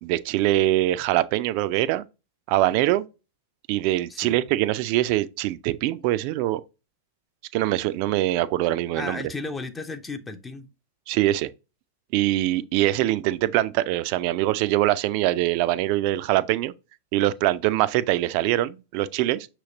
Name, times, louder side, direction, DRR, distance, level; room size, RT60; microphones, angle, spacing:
voice 1, 0.0-2.0 2.5-3.1 3.7-6.6 7.5-9.2 11.1-11.5 12.1-16.7 17.1-19.5, right 15 dB, 45° right, 0.3 m, -23 dB
voice 2, 8.9-10.7, left 3 dB, 15° left, 0.5 m, -34 dB
6.1 x 2.9 x 2.8 m
figure-of-eight pair, 95°, 0 cm